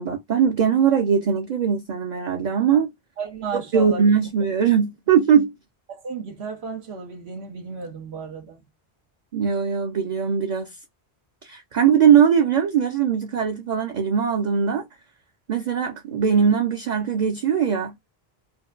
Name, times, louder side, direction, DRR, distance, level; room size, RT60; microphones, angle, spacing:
voice 1, 0.0-2.9 3.5-5.5 9.3-10.7 11.4-14.9 15.5-17.9, right 7 dB, 55° right, 0.6 m, -20 dB
voice 2, 3.2-4.1 5.9-8.6, right 5 dB, 90° right, 1.3 m, -33 dB
4.4 x 2.2 x 2.3 m
omnidirectional pair, 1.1 m